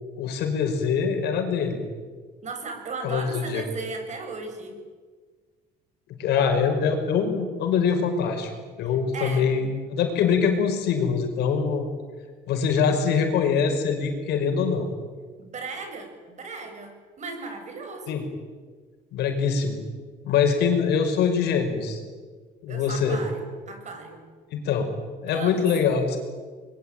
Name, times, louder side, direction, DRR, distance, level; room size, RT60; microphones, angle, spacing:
voice 1, 0.2-1.8 3.0-3.6 6.2-11.9 12.5-14.9 18.1-18.2 19.1-19.8 20.2-22.0 22.6-23.2 24.5-24.9 25.2-26.2, left 6 dB, 80° left, 5 dB, 5.5 m, -24 dB
voice 2, 2.4-4.8 8.8-9.5 15.4-18.2 22.7-24.2 25.3-25.7, right 4 dB, 45° right, 5 dB, 6.7 m, -37 dB
24.5 x 22.5 x 9.3 m, 1.5 s
cardioid pair, 110°, 17 cm